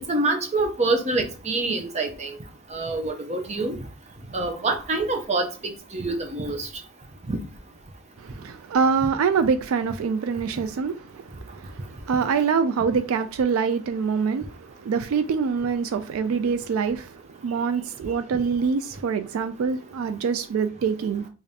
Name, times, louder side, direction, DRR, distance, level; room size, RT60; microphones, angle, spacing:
voice 1, 0.1-2.3 2.7-3.8 4.3-5.5 5.9-6.7 7.3-7.4, right 2 dB, 30° right, 0.6 m, -26 dB
voice 2, 8.2-21.3, right 5 dB, 75° right, 0.3 m, -25 dB
5.0 x 2.5 x 2.7 m
head